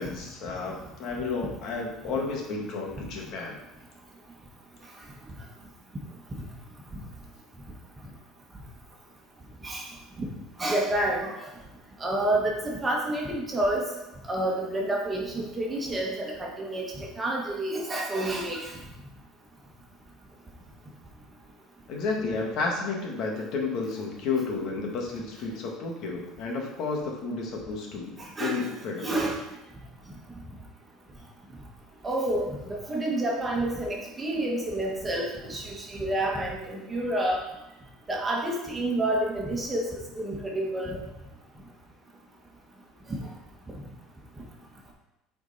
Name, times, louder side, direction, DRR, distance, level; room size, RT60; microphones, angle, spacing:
voice 1, 0.0-3.6 21.9-29.1, left 4 dB, 60° left, 0 dB, 1.9 m, -32 dB
voice 2, 10.6-11.5 12.0-13.9 14.3-18.8 28.2-28.7 29.0-29.4 32.0-37.4 38.1-41.0, right 1 dB, 20° right, -2 dB, 1.7 m, -29 dB
8.5 x 4.6 x 4.3 m, 0.92 s
supercardioid pair, 120°, 0 cm